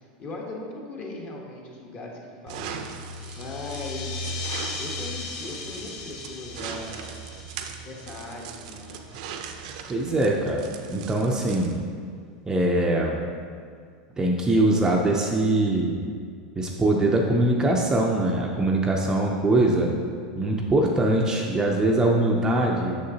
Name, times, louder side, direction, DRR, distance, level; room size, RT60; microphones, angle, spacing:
voice 1, 0.2-2.7 3.3-4.3 4.8-7.1 7.8-9.2, left 2 dB, 35° left, -1 dB, 1.0 m, -38 dB
sound 1, 2.5-11.8, right 4 dB, 65° right, 0.5 m, -38 dB
sound 2, 3.0-9.2, left 4 dB, 65° left, 0.7 m, -38 dB
voice 2, 9.9-11.8 12.5-13.2 14.2-16.0 16.6-19.9 20.4-23.0, right 1 dB, 15° right, -1 dB, 0.5 m, -22 dB
6.5 x 6.4 x 2.8 m, 2.1 s
supercardioid pair, 140°, 4 cm